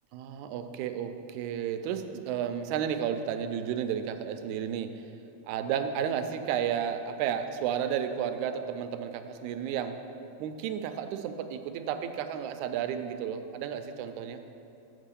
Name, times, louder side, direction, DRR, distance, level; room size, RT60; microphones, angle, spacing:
voice 1, 0.1-4.9 5.5-10.0 10.4-14.4, right 8 dB, 85° right, 8 dB, 2.0 m, -32 dB
7.9 x 5.4 x 6.8 m, 2.8 s
omnidirectional pair, 3.4 m